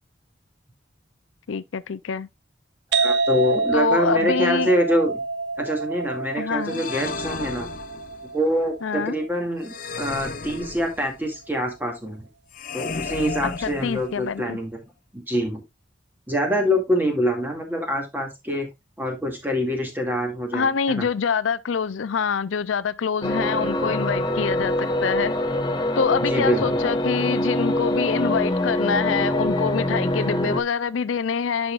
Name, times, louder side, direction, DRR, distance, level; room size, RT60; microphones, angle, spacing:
voice 1, 1.5-2.3 3.7-4.7 6.4-6.8 8.8-9.2 13.6-14.6 20.5-25.4 26.0-31.7, left 6 dB, 85° left, 0.5 m, -25 dB
voice 2, 2.9-5.1 5.6-7.7 8.3-12.3 12.7-14.8 15.1-15.6 16.3-18.7 19.0-21.1 26.3-26.6, equal, 10° right, 2.2 m, -25 dB
sound 1, 2.9-10.4, right 3 dB, 65° right, 0.7 m, -27 dB
Healing Spell, 6.7-8.4 9.6-11.3 12.5-14.4, left 4 dB, 45° left, 0.7 m, -34 dB
sound 2, 23.2-30.6, left 1 dB, 20° left, 0.9 m, -24 dB
11.0 x 5.7 x 2.4 m
head